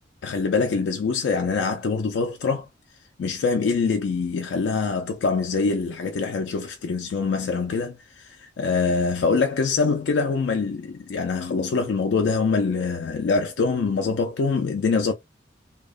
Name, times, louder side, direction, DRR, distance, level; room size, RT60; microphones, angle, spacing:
voice 1, 0.2-2.7 3.2-15.1, left 4 dB, 75° left, 0.4 m, -24 dB
2.8 x 2.0 x 2.3 m
head